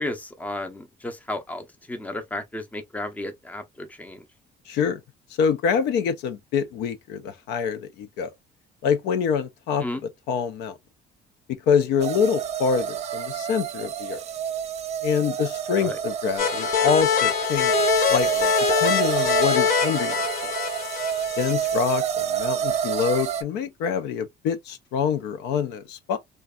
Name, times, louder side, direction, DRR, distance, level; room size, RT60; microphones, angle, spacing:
voice 1, 0.0-4.2 9.8-10.0 15.8-16.0, left 1 dB, 10° left, 0.5 m, -33 dB
voice 2, 4.7-5.0 5.4-8.3 8.8-9.9 10.3-10.7 11.5-14.2 15.0-18.5 18.8-20.1 21.4-26.2, left 7 dB, 85° left, 0.5 m, -25 dB
sound 1, 12.0-23.4, right 9 dB, 40° right, 0.4 m, -28 dB
sound 2, 16.4-21.8, left 8 dB, 55° left, 0.8 m, -24 dB
2.6 x 2.2 x 2.2 m
cardioid pair, 110°, 17 cm